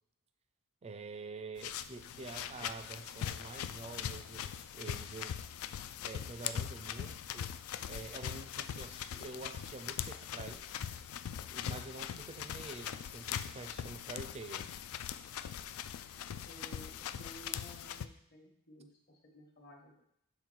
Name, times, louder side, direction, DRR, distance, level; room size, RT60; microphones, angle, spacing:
voice 1, 0.8-5.4 6.0-7.5 7.8-10.7 11.5-14.7, right 3 dB, 30° right, 9 dB, 0.4 m, -47 dB
sound 1, 1.6-18.1, left 9 dB, 75° left, 0.3 m, -41 dB
voice 2, 16.4-20.0, equal, 50° left, 2 dB, 1.1 m, -55 dB
6.6 x 3.8 x 4.5 m, 0.73 s
head